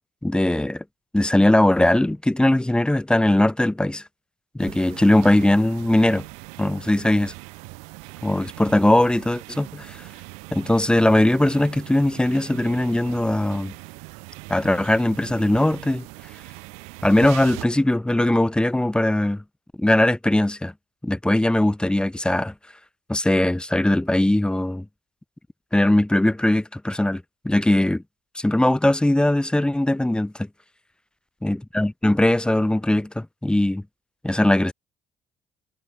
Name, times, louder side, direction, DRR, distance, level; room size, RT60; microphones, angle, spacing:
voice 1, 0.2-0.8 1.1-4.0 4.5-6.2 6.6-7.3 8.2-10.0 10.5-13.7 14.5-16.1 17.0-19.4 19.8-20.7 21.0-22.5 23.1-24.8 25.7-28.0 28.3-30.5 31.4-33.8 34.2-34.7, left 1 dB, 10° left, 1.4 m, -20 dB
sound 1, 4.6-17.7, right 32 dB, 80° right, 6.0 m, -41 dB
hypercardioid pair, 55°, 11 cm